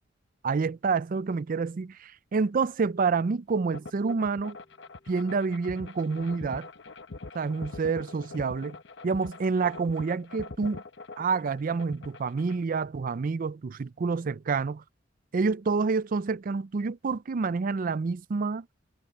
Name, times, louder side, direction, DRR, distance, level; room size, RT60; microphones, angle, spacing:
voice 1, 0.4-4.6 5.1-6.7 7.3-8.8 9.0-10.8 11.2-14.8 15.3-18.7, right 4 dB, 45° right, 0.4 m, -28 dB
sound 1, 3.5-9.2, left 1 dB, 30° left, 6.4 m, -66 dB
sound 2, 3.7-12.6, left 3 dB, 65° left, 1.1 m, -43 dB
head